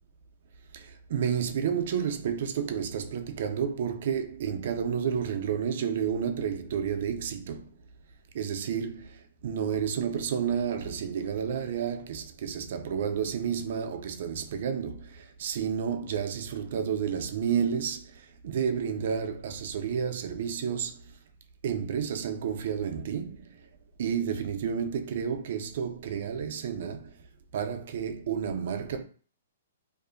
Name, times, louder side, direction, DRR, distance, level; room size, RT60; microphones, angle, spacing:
voice 1, 0.7-7.7 8.3-21.0 21.6-23.6 24.0-27.1 27.5-29.0, right 7 dB, 60° right, 0.3 m, -31 dB
2.5 x 2.3 x 2.5 m
hypercardioid pair, 145°, 0 cm